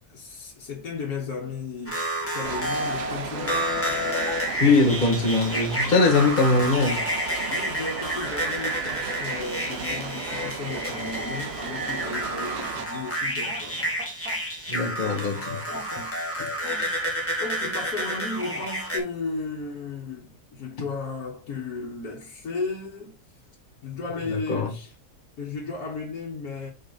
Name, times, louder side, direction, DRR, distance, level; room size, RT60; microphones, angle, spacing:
voice 1, 0.1-2.0 2.3-4.2 7.5-13.9 14.7-16.4 17.4-23.2 23.8-24.9 25.4-26.7, left 4 dB, 75° left, 1.7 m, -35 dB
sound 1, 1.9-19.0, equal, 10° left, 1.3 m, -30 dB
sound 2, 2.4-12.8, right 7 dB, 55° right, 0.9 m, -36 dB
sound 3, 2.7-17.9 18.4-19.0, right 2 dB, 80° right, 2.3 m, -44 dB
voice 2, 4.6-7.0 14.7-15.6 16.4-16.5 24.2-24.7, left 3 dB, 35° left, 1.4 m, -21 dB
5.2 x 3.9 x 5.2 m
omnidirectional pair, 1.6 m